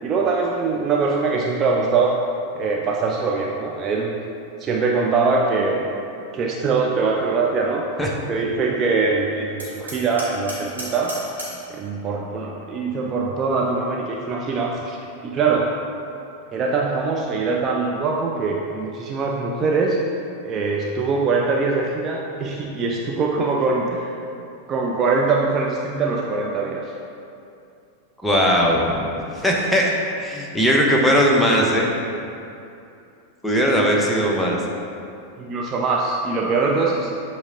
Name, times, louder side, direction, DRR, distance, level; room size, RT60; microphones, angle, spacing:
voice 1, 0.0-2.2 2.5-4.2 4.6-5.8 6.3-7.9 8.3-11.1 11.7-15.0 15.2-15.7 16.5-20.0 20.4-24.1 24.7-26.9 35.4-37.1, right 4 dB, 30° right, -1 dB, 0.5 m, -22 dB
Hammer, 9.6-11.7, right 1 dB, 75° right, 1.4 m, -35 dB
voice 2, 28.2-28.8 29.3-31.9 33.4-34.6, equal, 5° left, -2 dB, 0.8 m, -19 dB
8.0 x 3.2 x 3.7 m, 2.6 s
figure-of-eight pair, 90°, 0 cm